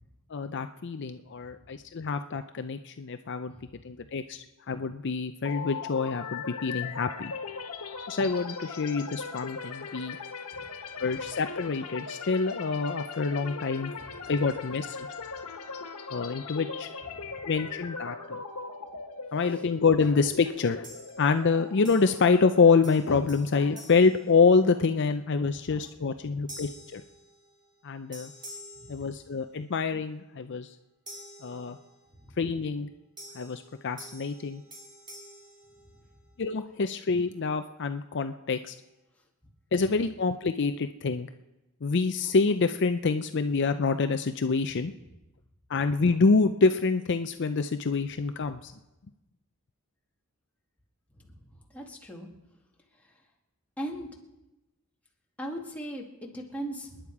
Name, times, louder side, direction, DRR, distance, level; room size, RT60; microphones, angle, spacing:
voice 1, 0.3-3.5 3.8-7.3 8.1-10.2 11.0-13.9 14.3-15.1 16.1-16.9 17.4-18.4 19.3-20.9 21.2-27.0 27.8-28.3 28.9-30.7 31.4-31.8 32.4-32.9 33.3-34.6 36.4-38.7 39.7-41.3 41.8-44.9 45.7-48.7, left 4 dB, 55° left, 9 dB, 0.5 m, -26 dB
sound 1, 5.4-23.2, left 5 dB, 85° left, 1.5 m, -39 dB
sound 2, 20.8-21.5 21.8-22.5 22.8-25.0 25.5-25.8 26.5-27.8 28.1-29.7 31.1-32.2 33.2-36.4, equal, 20° right, 3.1 m, -49 dB
voice 2, 51.7-52.3 53.8-54.1 55.4-57.0, right 1 dB, 5° left, -1 dB, 2.3 m, -38 dB
28.0 x 10.5 x 4.8 m, 1.0 s
head